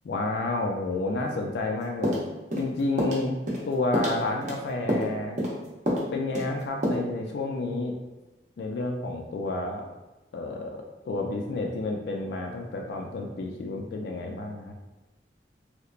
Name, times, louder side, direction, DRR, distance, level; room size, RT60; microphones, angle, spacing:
voice 1, 0.0-2.2 2.6-3.3 3.7-5.4 6.1-7.9 8.6-9.8 10.3-14.7, left 2 dB, 70° left, 1 dB, 0.3 m, -30 dB
sound 1, 2.0-2.7 3.0-3.2 3.5-3.7 3.9-4.6 4.9-5.1 5.4-5.6 5.9-6.1 6.3-6.5 6.8-6.9, equal, 40° right, 0.6 m, -27 dB
2.9 x 2.0 x 2.4 m, 1.1 s
head